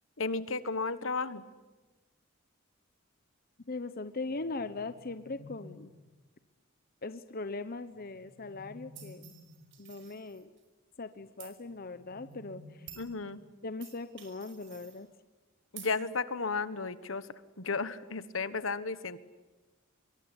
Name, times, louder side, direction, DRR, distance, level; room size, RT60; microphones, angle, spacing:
voice 1, 0.2-1.4 13.0-13.4 15.7-17.3 17.6-19.2, left 4 dB, 70° left, 14 dB, 1.4 m, -33 dB
voice 2, 3.7-5.9 7.0-9.3 9.8-10.5 11.0-12.9 13.6-15.1, left 3 dB, 45° left, 11 dB, 1.0 m, -40 dB
sound 1, 4.2-6.1 7.9-9.8 11.6-13.6, left 1 dB, 10° right, 4.3 m, -54 dB
sound 2, 8.9-10.6 11.4-11.5 12.3-12.4 12.9-13.1 13.8-15.0 15.8-15.9, right 10 dB, 60° right, 5.5 m, -51 dB
25.0 x 23.0 x 9.9 m, 1.2 s
head